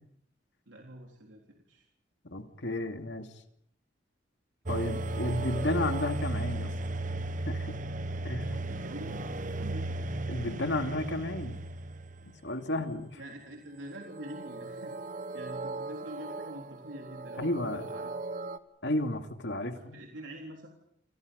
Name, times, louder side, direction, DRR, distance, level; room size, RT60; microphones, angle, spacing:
voice 1, 0.7-1.9 8.4-10.1 13.2-18.1 19.6-20.7, equal, 85° right, 1 dB, 3.7 m, -46 dB
voice 2, 2.2-3.3 4.7-6.7 7.5-7.8 8.2-8.6 10.3-11.6 12.4-13.2 17.4-17.8 18.8-20.0, left 1 dB, 70° left, 6 dB, 2.7 m, -32 dB
sound 1, 4.7-12.3 14.1-18.6, right 2 dB, 45° right, 1.3 m, -36 dB
29.0 x 28.0 x 5.4 m, 0.72 s
head